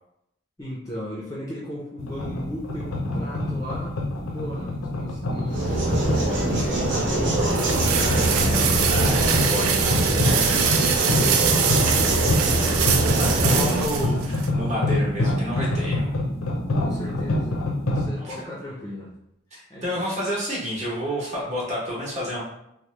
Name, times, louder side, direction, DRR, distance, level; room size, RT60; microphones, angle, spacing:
voice 1, 0.6-3.9 4.3-8.9 10.6-12.9 13.5-13.7 16.8-17.6 17.9-19.1 19.7-20.1, equal, 15° left, -5 dB, 0.5 m, -37 dB
sound 1, 2.0-18.1, left 1 dB, 85° left, 0.5 m, -27 dB
sound 2, 5.5-13.9, right 2 dB, 60° right, 0.7 m, -24 dB
sound 3, 6.7-14.5, right 7 dB, 90° right, 0.3 m, -25 dB
voice 2, 7.4-8.3 8.8-10.8 11.9-12.0 13.2-16.1 18.2-18.3 19.5-22.4, equal, 35° right, -5 dB, 0.9 m, -30 dB
3.0 x 2.1 x 3.1 m, 0.80 s
head